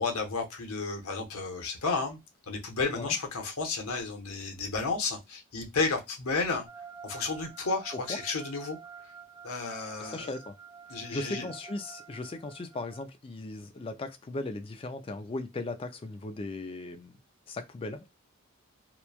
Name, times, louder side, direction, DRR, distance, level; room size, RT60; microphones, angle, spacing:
voice 1, 0.0-2.2 2.5-6.7 7.0-8.8 9.4-10.3 10.9-11.5, left 4 dB, 80° left, 0.8 m, -32 dB
sound 1, 6.7-13.0, right 6 dB, 15° right, 0.8 m, -49 dB
voice 2, 10.0-10.5 10.9-17.2 17.5-18.0, left 2 dB, 25° left, 0.3 m, -37 dB
3.0 x 2.1 x 2.3 m
head